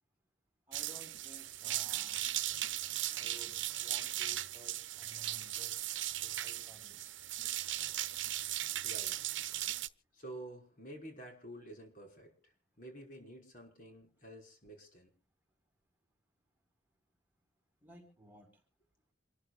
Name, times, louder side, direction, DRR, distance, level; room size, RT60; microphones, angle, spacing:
voice 1, 0.7-2.2 3.1-5.8 6.2-7.2 17.8-18.5, right 1 dB, 10° right, 1 dB, 4.9 m, -57 dB
sound 1, 0.7-9.9, right 14 dB, 85° right, 0.8 m, -37 dB
voice 2, 8.8-9.2 10.1-12.5 12.8-15.1, right 1 dB, 45° left, 2 dB, 5.6 m, -50 dB
27.5 x 14.0 x 2.5 m, 0.37 s
head